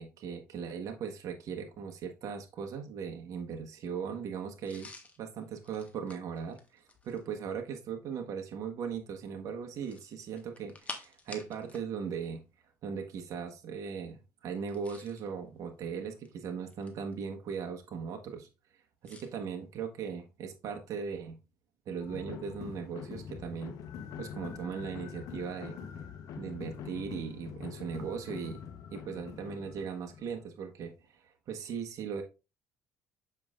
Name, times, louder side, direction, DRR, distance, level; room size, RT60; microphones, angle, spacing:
voice 1, 0.0-4.9 5.2-12.4 12.8-18.5 19.0-21.4 21.9-23.8 24.2-25.8 26.4-28.6 28.9-32.2, right 6 dB, 60° right, 1.3 m, -38 dB
sound 1, 4.6-7.3 9.7-11.9 12.2-12.3 14.6-15.3 16.0-17.1 19.0-19.3, left 3 dB, 20° left, 1.4 m, -49 dB
sound 2, 22.0-30.5, left 7 dB, 65° left, 1.1 m, -44 dB
7.2 x 5.5 x 2.5 m
supercardioid pair, 90°, 6 cm